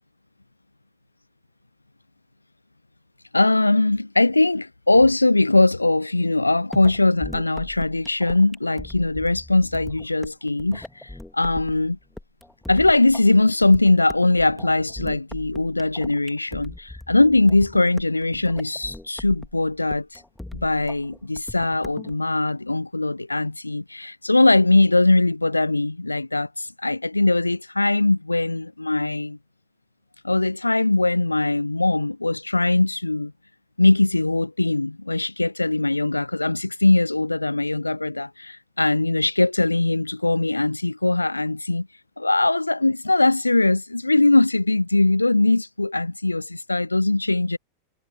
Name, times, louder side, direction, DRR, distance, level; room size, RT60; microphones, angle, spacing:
voice 1, 3.3-12.0 12.7-20.2 20.6-29.4 30.2-33.3 33.8-41.9 42.2-47.6, left 2 dB, 85° left, 0.7 m, -21 dB
sound 1, 6.7-22.1, left 1 dB, 5° left, 2.0 m, -40 dB
figure-of-eight pair, 90°, 0 cm